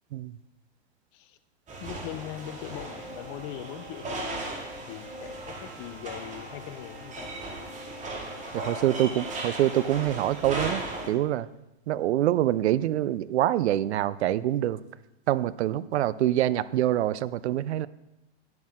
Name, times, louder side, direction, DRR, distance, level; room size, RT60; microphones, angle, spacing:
sound 1, 1.7-11.1, right 2 dB, 20° right, 2.1 m, -37 dB
voice 1, 1.8-7.3, left 12 dB, 45° left, 11 dB, 0.8 m, -41 dB
voice 2, 8.5-11.5 11.9-14.8 15.3-17.9, right 13 dB, 80° right, 18 dB, 0.6 m, -25 dB
10.5 x 9.5 x 3.7 m, 0.96 s
hypercardioid pair, 125°, 33 cm